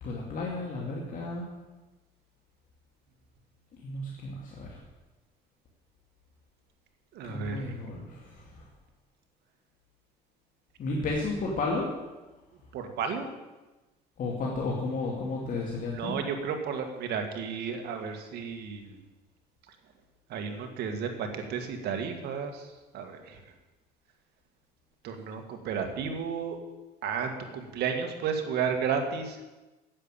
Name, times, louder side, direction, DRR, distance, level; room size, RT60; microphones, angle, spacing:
voice 1, 0.0-1.5 3.8-4.8 7.2-8.7 10.8-11.9 14.2-16.2, left 3 dB, 55° left, -2 dB, 2.4 m, -33 dB
voice 2, 7.1-7.8 12.7-13.3 15.9-19.0 20.3-23.4 25.0-26.6 27.0-29.4, right 6 dB, 75° right, 5 dB, 2.0 m, -33 dB
9.9 x 8.6 x 9.0 m, 1.1 s
cardioid pair, 110°, 17 cm